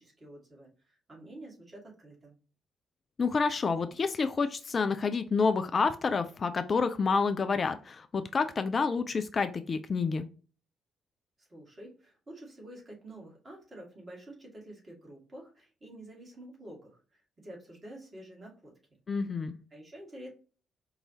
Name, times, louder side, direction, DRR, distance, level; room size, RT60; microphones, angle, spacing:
voice 1, 0.0-2.3 11.4-18.7 19.7-20.3, right 1 dB, 30° right, -2 dB, 1.9 m, -49 dB
voice 2, 3.2-10.3 19.1-19.5, left 4 dB, 40° left, 9 dB, 0.3 m, -28 dB
4.7 x 2.6 x 2.8 m, 0.38 s
figure-of-eight pair, 40°, 0 cm